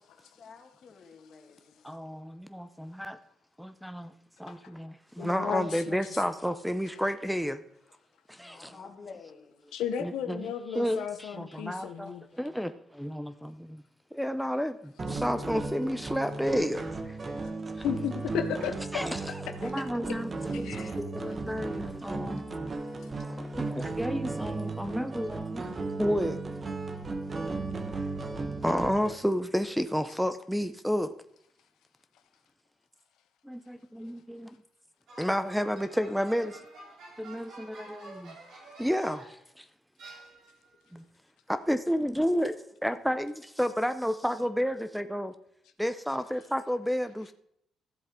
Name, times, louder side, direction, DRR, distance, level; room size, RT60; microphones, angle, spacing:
voice 1, 0.4-1.8 8.5-9.6, left 5 dB, 50° left, 1.8 m, -49 dB
voice 2, 1.8-3.2 3.6-4.1 4.4-7.6 8.3-8.8 10.0-10.5 10.7-13.8 14.1-17.2 17.7-17.8 18.9-19.3 19.6-22.6 23.2-25.7 26.0-26.4 28.6-31.1 33.4-34.5 35.2-36.6 37.2-38.3 38.8-39.7 40.9-41.0 41.5-42.6 42.8-45.3 45.8-47.3, equal, ahead, 0.6 m, -31 dB
voice 3, 5.2-6.2 9.7-12.2 17.8-19.0 19.6-19.7 20.6-21.0, left 8 dB, 85° left, 0.7 m, -34 dB
sound 1, 15.0-29.1, right 3 dB, 35° right, 1.3 m, -35 dB
sound 2, 35.1-39.5 40.0-40.7, right 2 dB, 75° right, 5.2 m, -49 dB
13.5 x 7.6 x 3.7 m
cardioid pair, 90°, 0 cm